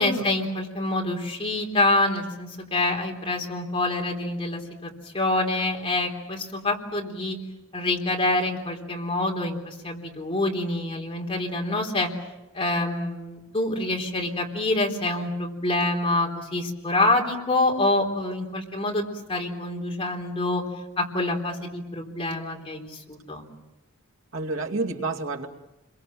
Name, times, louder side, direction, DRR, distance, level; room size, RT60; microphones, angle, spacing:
voice 1, 0.0-7.4 7.7-12.1 12.5-20.6 21.0-23.4, left 2 dB, 25° left, 1 dB, 3.8 m, -26 dB
voice 2, 24.3-25.5, right 3 dB, 65° right, 1 dB, 2.5 m, -29 dB
29.5 x 23.0 x 7.7 m, 0.96 s
head